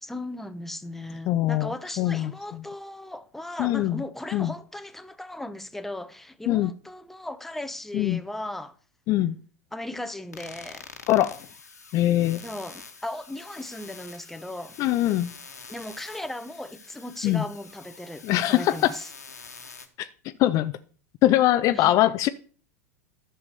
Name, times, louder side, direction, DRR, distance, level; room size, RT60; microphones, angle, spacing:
voice 1, 0.0-8.8 9.7-10.9 12.4-14.8 15.7-19.1 21.7-21.9, left 1 dB, 5° left, 0.9 m, -37 dB
voice 2, 1.3-2.6 3.6-4.0 4.3-4.5 6.5-6.7 7.9-8.2 9.1-9.4 11.1-11.4 11.9-12.4 14.8-15.3 17.2-17.4 18.2-18.9 20.0-20.1 20.4-20.7 21.2-22.3, left 14 dB, 40° left, 0.5 m, -22 dB
sound 1, 10.3-19.9, left 5 dB, 85° left, 1.4 m, -46 dB
11.0 x 7.0 x 6.7 m
figure-of-eight pair, 90°, 9 cm